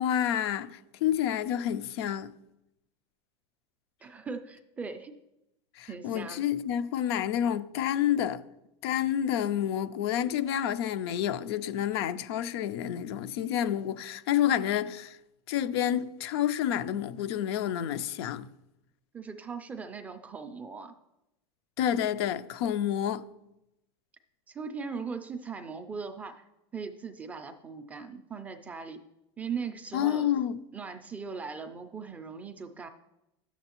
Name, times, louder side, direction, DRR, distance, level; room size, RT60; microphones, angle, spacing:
voice 1, 0.0-2.3 5.8-8.4 8.8-15.2 15.5-18.5 21.8-23.3 29.9-30.6, left 10 dB, 70° left, 0.4 m, -29 dB
voice 2, 4.0-5.1 5.9-6.4 19.1-20.9 24.5-26.4 26.7-29.0 29.4-30.3 30.7-32.9, right 5 dB, 10° right, 0.3 m, -39 dB
11.0 x 7.0 x 2.9 m
supercardioid pair, 170°, 14 cm